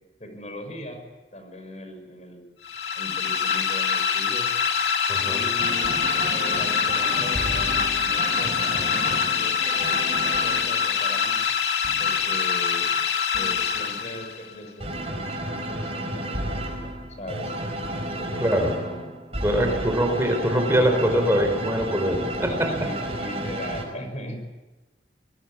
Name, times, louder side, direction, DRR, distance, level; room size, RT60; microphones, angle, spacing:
voice 1, 0.2-2.4 2.9-4.5 5.3-5.9 6.3-11.4 12.0-12.9 13.3-17.5 18.0-19.1 19.5-19.9 22.8-24.4, equal, 40° left, 6 dB, 5.9 m, -39 dB
sound 1, 2.6-14.5, left 7 dB, 65° left, 2.8 m, -24 dB
voice 2, 5.1-5.4 18.4-18.7 19.4-22.8, equal, 15° right, 5 dB, 3.9 m, -23 dB
sound 2, 5.6-11.2 11.8-12.4 13.3-14.0 14.8-23.8, right 1 dB, 35° right, 5.3 m, -32 dB
26.5 x 20.0 x 8.6 m, 1.1 s
head